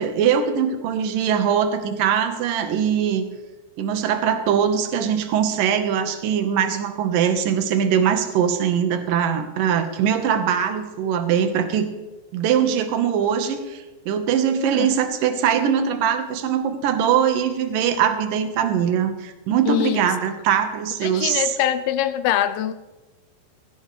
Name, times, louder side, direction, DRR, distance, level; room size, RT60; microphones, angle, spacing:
voice 1, 0.0-3.2 3.8-11.9 12.3-21.6, right 8 dB, 65° right, 2.4 m, -21 dB
voice 2, 19.7-20.1 21.0-22.7, left 11 dB, 85° left, 3.0 m, -23 dB
18.5 x 16.0 x 3.3 m
omnidirectional pair, 5.2 m